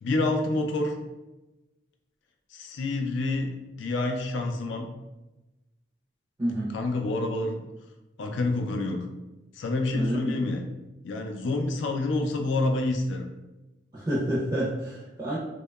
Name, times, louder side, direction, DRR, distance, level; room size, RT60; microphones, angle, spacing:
voice 1, 0.0-0.9 2.5-3.5 3.8-4.9 6.7-7.6 8.2-9.0 9.6-10.6 11.0-13.3, left 2 dB, 80° left, 4 dB, 0.4 m, -27 dB
voice 2, 6.4-6.7 9.9-10.3 13.9-15.4, right 1 dB, 25° right, -8 dB, 0.5 m, -28 dB
2.7 x 2.2 x 2.2 m, 1.1 s
head